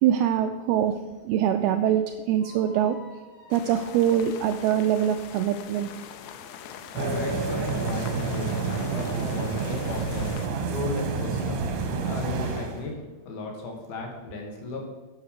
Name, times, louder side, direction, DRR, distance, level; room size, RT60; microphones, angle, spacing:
voice 1, 0.0-0.9 1.3-3.0 3.5-5.9, right 10 dB, 85° right, 6 dB, 2.2 m, -23 dB
sound 1, 2.4-5.6, left 3 dB, 20° left, 3.1 m, -52 dB
sound 2, 3.5-10.5, left 9 dB, 85° left, 2.6 m, -43 dB
voice 2, 6.9-11.6 12.0-13.0 13.2-14.8, left 2 dB, 65° left, 0 dB, 3.3 m, -35 dB
sound 3, 7.0-12.9, right 4 dB, 70° right, 2.9 m, -29 dB
9.4 x 5.9 x 6.6 m, 1.2 s
omnidirectional pair, 5.0 m